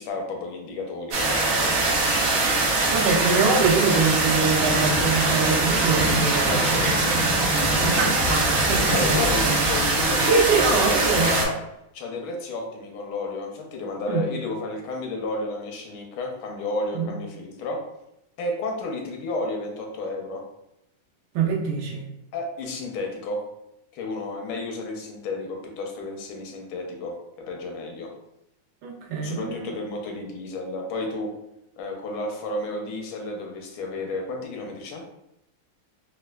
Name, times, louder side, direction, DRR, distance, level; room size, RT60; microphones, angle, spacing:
voice 1, 0.0-2.0 6.4-7.2 8.9-11.5 11.9-17.8 18.4-20.4 22.3-23.4 23.9-27.1 27.5-28.1 29.2-31.3 31.8-35.0, left 2 dB, 85° left, 1 dB, 1.5 m, -32 dB
sound 1, 1.1-11.4, right 2 dB, 70° right, 0.8 m, -22 dB
voice 2, 2.9-6.8 7.8-9.3 10.3-11.3 14.1-14.3 16.9-17.0 21.3-22.0 28.8-29.7, right 5 dB, 90° right, -2 dB, 1.6 m, -24 dB
4.2 x 2.2 x 2.3 m, 0.84 s
omnidirectional pair, 2.2 m